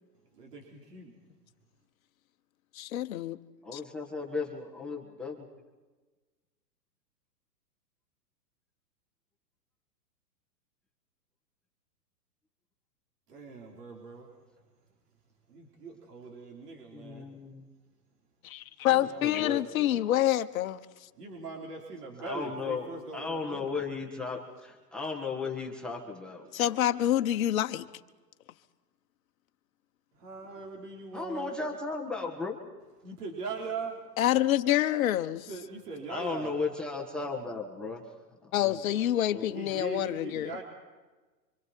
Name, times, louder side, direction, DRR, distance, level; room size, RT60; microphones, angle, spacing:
voice 1, 0.4-1.1 13.3-14.3 15.5-17.3 18.8-19.5 19.9-20.1 21.2-23.7 30.2-31.5 33.0-34.0 35.5-36.5 39.5-40.6, right 4 dB, 70° right, 4.6 m, -41 dB
voice 2, 2.7-3.4 3.7-3.8 18.4-20.8 26.5-27.9 34.2-35.5 38.5-40.6, left 13 dB, 55° left, 1.2 m, -27 dB
voice 3, 3.6-5.3 16.9-17.6 19.2-19.9 22.2-22.9 23.1-26.7 31.1-32.5 36.1-38.0 38.4-38.8 39.3-39.8, left 4 dB, ahead, 1.6 m, -36 dB
27.0 x 25.5 x 4.6 m
hypercardioid pair, 140°, 49 cm